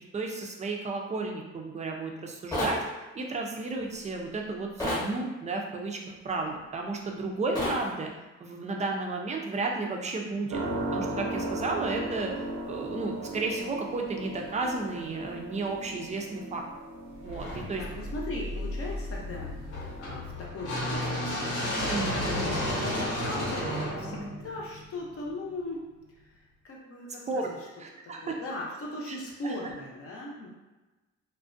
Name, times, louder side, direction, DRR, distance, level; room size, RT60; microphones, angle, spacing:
voice 1, 0.0-2.8 3.1-6.0 6.2-8.1 8.4-10.6 10.9-12.3 12.7-16.6 17.2-17.8 21.9-22.6 27.3-27.5 27.8-28.3 29.1-29.2 29.4-29.6, right 3 dB, 25° right, 1 dB, 0.4 m, -33 dB
sound 1, 2.5-2.8 4.8-5.1 7.5-7.8, left 1 dB, 10° left, 0.9 m, -29 dB
sound 2, 10.5-20.2, right 1 dB, 65° right, 0.6 m, -37 dB
sound 3, 17.2-25.3, left 1 dB, 85° left, 0.9 m, -32 dB
voice 2, 17.5-25.8 26.1-26.2 26.6-27.6 28.0-30.5, left 2 dB, 50° left, -2 dB, 0.7 m, -39 dB
2.4 x 2.1 x 2.5 m, 1.1 s
cardioid pair, 90°, 30 cm